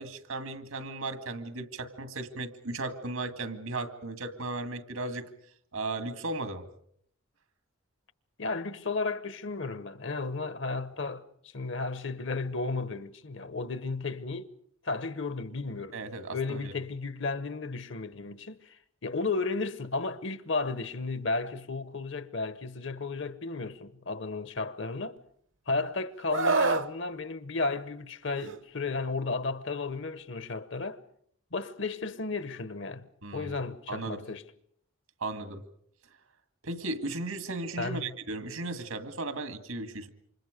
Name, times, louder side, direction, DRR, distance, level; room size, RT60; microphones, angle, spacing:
voice 1, 0.0-5.3 5.7-6.7 15.9-16.7 33.2-33.5 33.9-34.2 35.2-35.6 36.6-40.1, right 2 dB, 90° right, 2.1 m, -36 dB
voice 2, 8.4-11.2 11.5-14.5 14.8-16.0 16.3-18.8 19.0-25.2 25.7-31.0 31.5-33.1 33.3-34.4 37.8-38.2, left 3 dB, 60° left, 1.0 m, -33 dB
Screaming, 26.3-26.9 28.4-28.6, right 3 dB, 65° right, 0.9 m, -26 dB
28.5 x 25.5 x 5.1 m
head